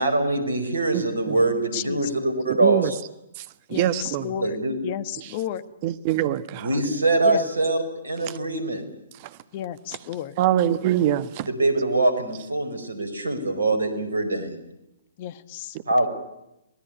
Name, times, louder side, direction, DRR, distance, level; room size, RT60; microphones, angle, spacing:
voice 1, 0.0-2.9 4.4-4.8 6.6-8.8 11.5-14.6 15.9-16.1, right 2 dB, 75° right, 10 dB, 5.2 m, -23 dB
voice 2, 0.9-1.4 2.6-2.9 3.4-4.3 5.2-5.3 5.8-6.7 8.3-8.4 9.2-9.4 10.4-11.5, right 12 dB, 40° right, 14 dB, 1.4 m, -24 dB
voice 3, 3.7-4.6 4.8-5.6 7.2-7.4 9.5-10.3 15.2-15.8, left 11 dB, 40° left, 15 dB, 1.5 m, -32 dB
25.5 x 18.5 x 9.5 m, 0.87 s
figure-of-eight pair, 120°, 0 cm